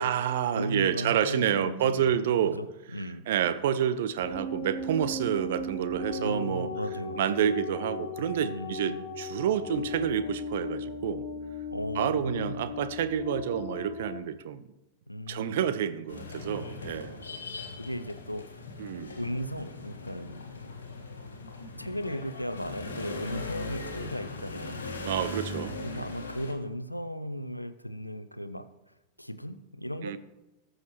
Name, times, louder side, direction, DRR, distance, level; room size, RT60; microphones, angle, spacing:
voice 1, 0.0-2.6 3.3-6.7 7.2-11.3 12.0-14.6 15.3-17.2 18.8-19.1 25.0-26.1 30.0-30.2, right 9 dB, 55° right, 13 dB, 0.6 m, -29 dB
voice 2, 0.5-2.2 2.4-2.7 2.9-3.2 6.2-7.2 8.4-9.1 11.7-12.6 15.1-15.7 17.8-18.9 19.2-20.4 21.1-21.3 21.8-24.8 25.8-28.6 29.2-30.2, equal, 90° left, 11 dB, 0.6 m, -36 dB
sound 1, 4.2-14.2, left 2 dB, 40° left, 1.3 m, -37 dB
sound 2, 16.1-26.5, left 3 dB, 70° left, 1.5 m, -40 dB
19.0 x 6.5 x 3.0 m, 0.96 s
figure-of-eight pair, 90°, 0 cm